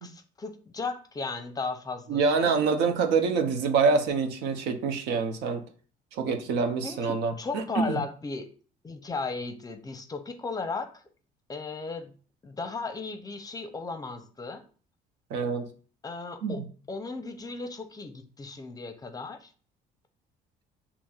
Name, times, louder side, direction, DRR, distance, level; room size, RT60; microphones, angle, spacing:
voice 1, 0.0-2.6 6.8-8.5 8.8-11.0 11.5-12.1 12.4-14.6 16.0-16.6 16.9-19.5, left 4 dB, 20° left, 9 dB, 0.5 m, -36 dB
voice 2, 2.1-5.6 6.1-8.0 15.3-15.7 16.4-16.6, right 5 dB, 90° right, 6 dB, 0.7 m, -26 dB
7.0 x 2.9 x 2.3 m, 0.40 s
cardioid pair, 110°, 17 cm